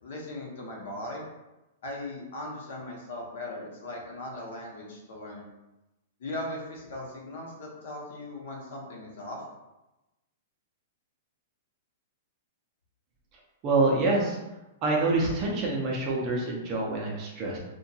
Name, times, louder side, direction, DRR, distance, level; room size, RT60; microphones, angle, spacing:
voice 1, 0.0-1.3 1.8-5.5 6.2-9.4, left 1 dB, 55° left, -2 dB, 0.8 m, -38 dB
voice 2, 13.6-14.4 14.8-17.6, right 2 dB, 25° right, -2 dB, 0.5 m, -26 dB
2.7 x 2.2 x 2.7 m, 0.99 s
hypercardioid pair, 175°, 0 cm